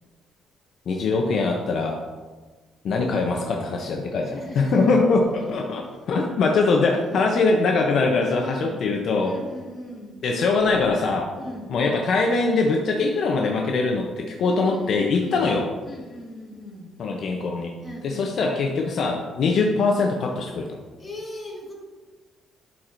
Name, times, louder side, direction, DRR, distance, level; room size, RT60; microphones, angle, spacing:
voice 1, 0.9-2.0 2.8-9.3 10.2-11.3 11.7-15.7 17.0-17.7 18.0-20.8, left 3 dB, 50° left, 1 dB, 0.6 m, -22 dB
voice 2, 4.2-5.5 6.7-7.7 8.2-8.9 9.2-10.2 11.4-11.7 14.4-15.4 15.8-17.0 17.8-18.4 21.0-21.7, left 1 dB, 15° left, -2 dB, 1.4 m, -39 dB
11.0 x 4.5 x 2.5 m, 1.3 s
cardioid pair, 160°, 0 cm